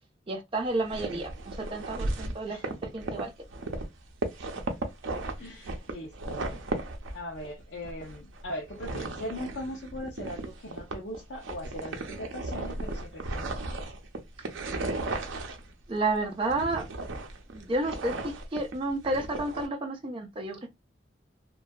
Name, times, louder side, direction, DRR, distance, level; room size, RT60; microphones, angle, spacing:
voice 1, 0.3-3.3 15.9-16.9 17.5-20.7, right 2 dB, 25° right, 0.5 m, -31 dB
sound 1, 0.7-3.9 4.2-7.5 7.8-15.7 15.9-19.7, right 2 dB, 85° right, 0.5 m, -35 dB
voice 2, 5.4-6.6 7.1-13.8, left 1 dB, 70° left, 0.6 m, -40 dB
2.6 x 2.3 x 2.2 m
head